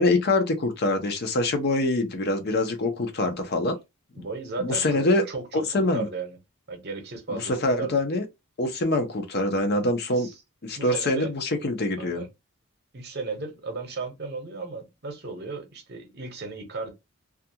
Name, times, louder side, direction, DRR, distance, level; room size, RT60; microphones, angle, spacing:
voice 1, 0.0-3.8 4.2-4.3 4.6-5.2 5.5-6.1 7.3-8.2 8.6-10.3 10.6-12.2, left 2 dB, 50° left, 0.6 m, -24 dB
voice 2, 4.2-6.4 6.7-7.5 7.8-7.9 10.2-10.3 10.7-11.3 12.0-12.3 12.9-16.9, right 3 dB, 50° right, 0.8 m, -35 dB
2.4 x 2.2 x 2.7 m
head